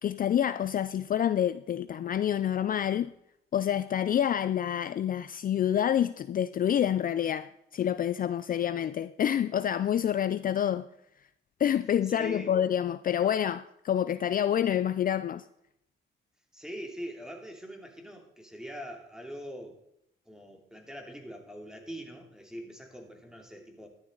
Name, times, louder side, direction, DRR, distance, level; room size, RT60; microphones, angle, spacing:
voice 1, 0.0-3.1 3.5-10.9 11.6-15.4, left 10 dB, 45° left, 0.4 m, -27 dB
voice 2, 12.0-12.5 16.5-19.8 20.3-23.9, equal, 5° right, 2.7 m, -43 dB
12.5 x 11.5 x 3.9 m
cardioid pair, 90°, 20 cm